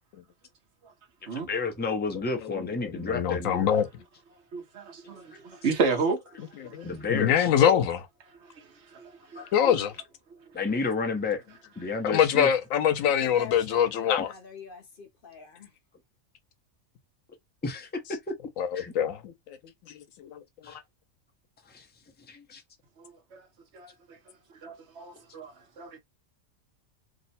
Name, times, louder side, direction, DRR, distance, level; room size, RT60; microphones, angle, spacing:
voice 1, 1.5-3.7 5.3-5.4 6.8-7.5 9.3-9.5 10.5-11.4 11.8-12.5 17.6-18.3 18.7-18.9 20.6-20.8 21.7-21.9 22.3-22.6, left 4 dB, 10° left, 0.5 m, -31 dB
voice 2, 2.8-3.9 6.6-8.1 9.5-9.9 12.0-14.3 18.6-19.6 20.2-20.4, left 9 dB, 90° left, 1.0 m, -24 dB
voice 3, 4.5-6.5 6.8-6.9 8.4-9.7 23.0-23.5 23.7-24.2 24.6-26.0, right 4 dB, 60° right, 1.1 m, -33 dB
voice 4, 13.2-15.7, left 6 dB, 50° left, 0.8 m, -44 dB
3.0 x 2.1 x 4.1 m
omnidirectional pair, 1.4 m